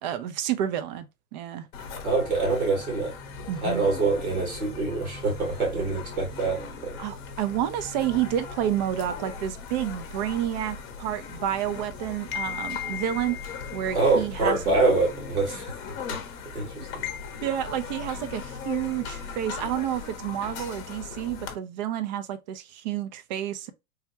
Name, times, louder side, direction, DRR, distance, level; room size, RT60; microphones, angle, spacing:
voice 1, 0.0-1.1 1.3-1.7 3.5-3.9 7.0-13.4 13.7-14.7 17.4-23.7, right 11 dB, 35° right, 0.4 m, -30 dB
sound 1, 1.7-21.5, left 6 dB, 40° left, 0.7 m, -38 dB
voice 2, 2.0-3.1 3.6-7.0 13.9-15.7 16.5-16.9, right 3 dB, 80° right, 2.0 m, -25 dB
3.3 x 2.2 x 2.7 m
hypercardioid pair, 110°, 43 cm